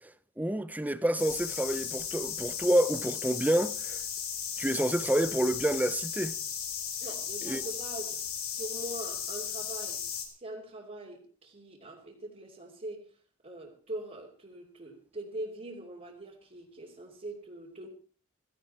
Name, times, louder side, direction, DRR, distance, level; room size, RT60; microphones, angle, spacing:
voice 1, 0.4-4.0 4.6-6.3 7.4-7.6, right 1 dB, 5° right, 0.8 m, -28 dB
sound 1, 1.2-10.3, left 8 dB, 65° left, 4.7 m, -36 dB
voice 2, 7.0-10.0 10.4-13.1 13.4-17.9, right 1 dB, 35° right, 3.2 m, -42 dB
17.0 x 16.0 x 4.4 m
head